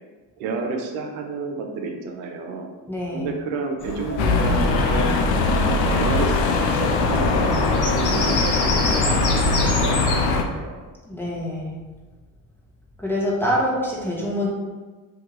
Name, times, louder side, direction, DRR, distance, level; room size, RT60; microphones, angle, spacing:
voice 1, 0.4-2.7 3.1-5.1 5.6-6.4 6.7-10.8, right 4 dB, 80° right, 3 dB, 0.7 m, -30 dB
voice 2, 2.9-3.3 11.1-11.8 13.0-14.5, equal, 5° left, -5 dB, 1.2 m, -25 dB
Bird vocalization bird call bird song, 3.8-10.2, left 2 dB, 40° left, 1.1 m, -29 dB
sound 1, 4.2-10.4, left 3 dB, 75° left, 0.6 m, -21 dB
2.7 x 2.7 x 3.8 m, 1.3 s
hypercardioid pair, 55°, 48 cm